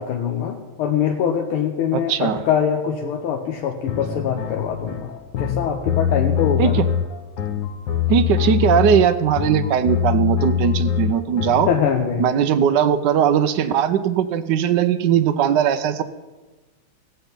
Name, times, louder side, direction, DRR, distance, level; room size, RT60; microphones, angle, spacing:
voice 1, 0.0-6.8 11.7-12.4, left 8 dB, 85° left, 2 dB, 1.8 m, -23 dB
voice 2, 1.9-2.4 6.6-6.8 8.1-11.7 12.2-16.0, right 9 dB, 70° right, 12 dB, 1.1 m, -19 dB
sound 1, 3.9-11.8, left 9 dB, 60° left, 1.6 m, -23 dB
18.0 x 8.1 x 5.3 m, 1.2 s
omnidirectional pair, 2.3 m